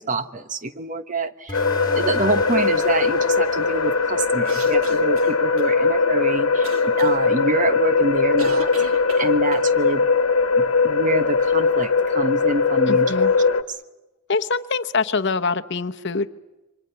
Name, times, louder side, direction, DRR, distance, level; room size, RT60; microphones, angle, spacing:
voice 1, 0.0-1.6 1.9-6.7 7.0-8.7 9.2-10.1 10.5-13.3, right 2 dB, 35° right, 10 dB, 1.1 m, -26 dB
sound 1, 1.5-13.6, left 4 dB, 70° left, 1.4 m, -20 dB
sound 2, 1.5-6.7, left 1 dB, 20° left, 2.1 m, -37 dB
sound 3, 4.4-5.7 6.6-7.1 8.4-9.7, right 2 dB, 70° right, 2.4 m, -35 dB
voice 2, 12.9-13.3 14.3-16.3, left 4 dB, 50° left, 9 dB, 1.0 m, -24 dB
28.0 x 25.0 x 6.9 m, 1.1 s
head